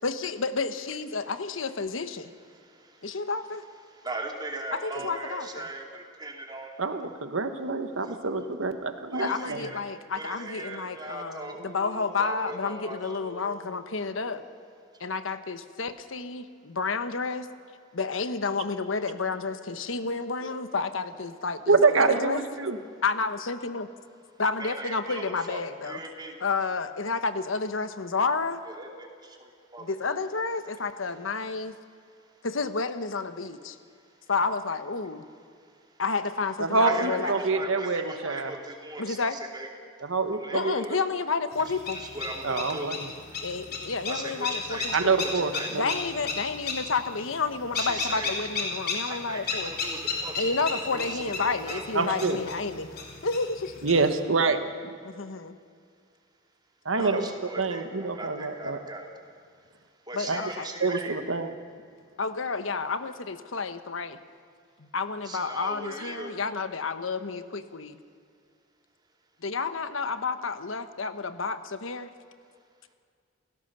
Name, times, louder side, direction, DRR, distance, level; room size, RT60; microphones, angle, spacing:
voice 1, 0.0-2.3 3.0-3.7 4.7-5.7 9.2-14.4 15.0-17.5 17.9-22.4 23.0-23.9 24.4-26.0 26.4-28.6 29.8-31.8 32.4-33.8 34.3-35.2 36.0-37.3 39.0-39.4 40.5-42.0 43.4-45.1 45.7-49.7 50.4-52.9 53.2-53.7 55.0-55.6 57.0-57.3 60.1-60.7 62.2-64.2 64.8-68.0 69.4-72.1, left 4 dB, 75° left, 10 dB, 1.1 m, -30 dB
voice 2, 4.0-6.7 9.1-9.8 10.1-13.8 14.1-14.6 20.4-20.6 24.6-26.3 28.6-28.9 29.7-30.1 36.8-39.7 40.4-41.0 42.0-42.9 44.1-45.7 47.7-48.3 49.1-52.3 56.9-59.1 60.1-61.2 65.2-66.3, right 2 dB, 20° right, 1 dB, 2.9 m, -39 dB
voice 3, 6.8-9.6 21.7-22.8 36.6-38.5 40.1-40.8 42.4-43.0 44.9-45.9 51.9-52.4 53.8-54.6 56.8-57.2 57.6-58.8 60.3-60.4 60.8-61.5, right 4 dB, 80° right, 8 dB, 1.3 m, -26 dB
sound 1, 41.5-54.2, left 4 dB, 50° left, 3.6 m, -35 dB
29.5 x 16.5 x 6.8 m, 2.2 s
head